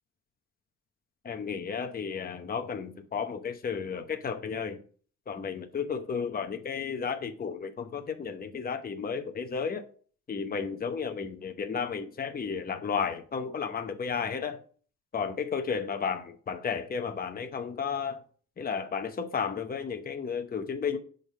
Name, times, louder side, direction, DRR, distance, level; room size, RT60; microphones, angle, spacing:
voice 1, 1.2-4.8 5.3-9.8 10.3-14.6 15.1-18.2 18.6-21.0, left 6 dB, 30° left, 0.8 m, -33 dB
6.5 x 3.6 x 5.4 m
cardioid pair, 90°, 30 cm